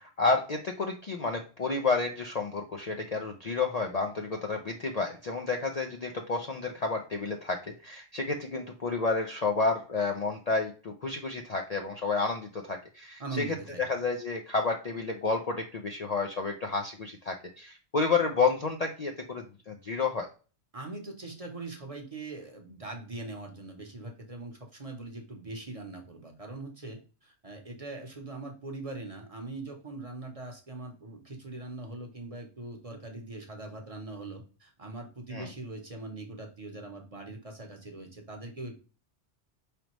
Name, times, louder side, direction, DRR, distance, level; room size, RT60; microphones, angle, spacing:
voice 1, 0.0-13.4 13.8-20.3 35.3-35.5, left 4 dB, 45° left, 3 dB, 0.5 m, -30 dB
voice 2, 13.2-14.0 20.7-38.8, right 2 dB, 35° right, 2 dB, 0.9 m, -41 dB
5.0 x 3.3 x 3.0 m, 0.35 s
omnidirectional pair, 1.2 m